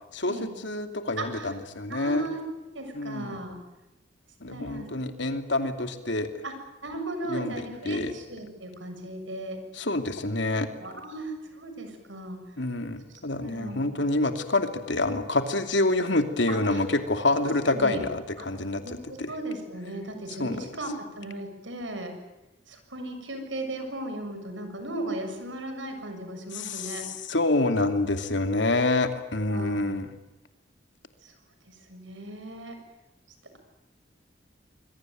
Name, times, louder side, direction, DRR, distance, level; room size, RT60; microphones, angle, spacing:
voice 1, 0.1-2.2 2.9-3.4 4.4-6.3 7.3-7.5 7.8-8.1 9.8-10.7 12.6-18.8 19.2-19.3 20.4-20.6 26.5-27.0 27.3-30.1, left 2 dB, 75° left, 6 dB, 2.8 m, -27 dB
voice 2, 1.2-1.5 1.9-2.4 2.7-3.6 4.5-4.9 6.4-6.5 6.8-9.6 10.8-12.4 13.1-13.9 16.5-16.8 17.7-18.0 18.4-18.5 18.8-22.1 22.7-27.0 29.5-29.9 31.2-31.3 31.7-32.8, right 1 dB, 85° right, 6 dB, 7.0 m, -36 dB
26.5 x 22.5 x 9.3 m, 0.98 s
head